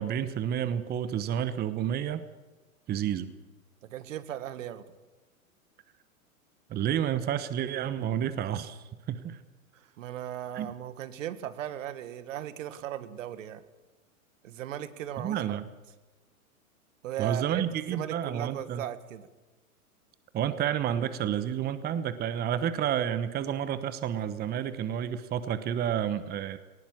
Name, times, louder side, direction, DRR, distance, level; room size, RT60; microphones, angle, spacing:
voice 1, 0.0-2.2 2.9-3.3 6.7-8.8 9.1-9.4 10.5-10.7 15.2-15.6 17.2-18.8 20.3-26.6, right 9 dB, 20° right, 13 dB, 1.0 m, -30 dB
voice 2, 3.8-4.9 9.7-13.6 14.4-15.6 17.0-19.3, right 11 dB, 60° right, 13 dB, 1.6 m, -37 dB
20.0 x 19.0 x 7.4 m, 1.2 s
hypercardioid pair, 105°, 43 cm